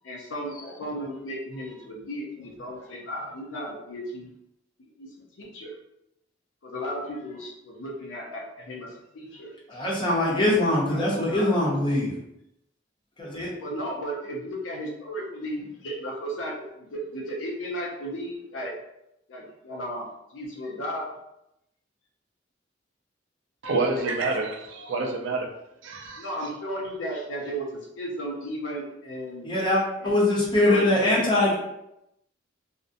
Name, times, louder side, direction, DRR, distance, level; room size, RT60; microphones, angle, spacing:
voice 1, 0.0-4.3 5.0-5.1 5.4-5.8 6.6-9.9 10.8-11.6 13.6-18.8 19.3-21.1 23.9-24.1 26.2-29.5 30.0-30.2 30.6-31.1, equal, 85° left, -1 dB, 0.5 m, -35 dB
voice 2, 9.7-12.1 13.2-13.5 29.4-31.6, left 1 dB, 25° left, -4 dB, 0.6 m, -22 dB
voice 3, 23.6-25.5 25.8-26.3, right 3 dB, 70° right, 1 dB, 0.4 m, -28 dB
2.5 x 2.1 x 2.5 m, 0.84 s
head